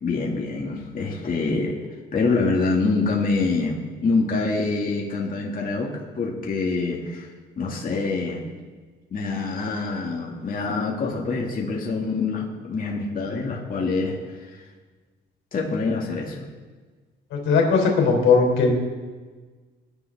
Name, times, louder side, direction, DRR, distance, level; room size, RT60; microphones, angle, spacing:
voice 1, 0.0-1.7 2.1-7.3 7.6-8.4 9.1-14.6 15.5-16.5, left 3 dB, 45° left, -2 dB, 2.3 m, -25 dB
voice 2, 17.3-18.7, left 4 dB, 85° left, 1 dB, 3.5 m, -18 dB
20.5 x 10.5 x 3.6 m, 1.4 s
cardioid pair, 90°, 20 cm